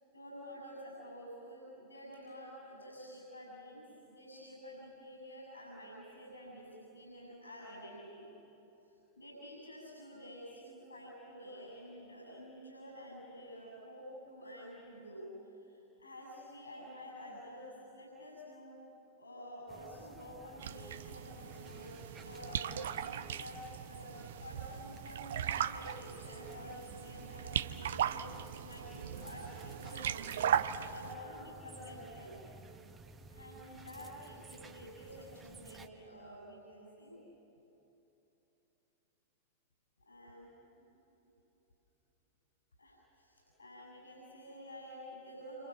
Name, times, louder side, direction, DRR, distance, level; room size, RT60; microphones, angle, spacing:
voice 1, 0.1-8.3 8.8-18.8 19.2-21.9 22.2-30.5 30.9-32.4 33.3-37.2 40.0-40.5 40.8-40.9 42.8-45.7, equal, 80° left, -1 dB, 7.5 m, -50 dB
sound 1, 19.7-35.9, right 4 dB, 20° right, 1.5 m, -54 dB
sound 2, 20.6-31.2, right 9 dB, 60° right, 0.7 m, -38 dB
28.5 x 26.0 x 7.5 m, 2.9 s
figure-of-eight pair, 90°, 0 cm